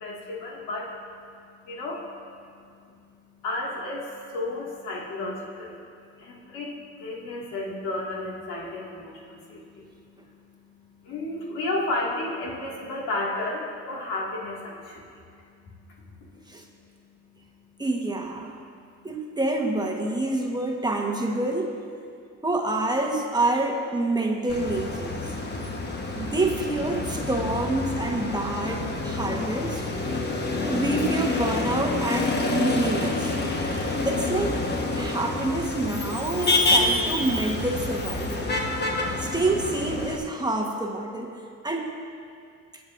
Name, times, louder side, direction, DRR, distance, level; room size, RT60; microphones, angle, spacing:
voice 1, 0.0-5.9 6.2-16.5 17.0-17.8, left 2 dB, 85° left, -4 dB, 2.1 m, -34 dB
voice 2, 17.8-18.5 19.0-21.7 22.4-25.3 26.1-29.8 30.6-33.4 34.0-34.6 34.9-38.6 39.2-41.9, right 2 dB, 15° right, 0 dB, 1.2 m, -27 dB
Motor vehicle (road), 24.5-40.2, left 2 dB, 35° left, 1.2 m, -27 dB
20.5 x 8.4 x 2.6 m, 2.3 s
cardioid pair, 90°, 30 cm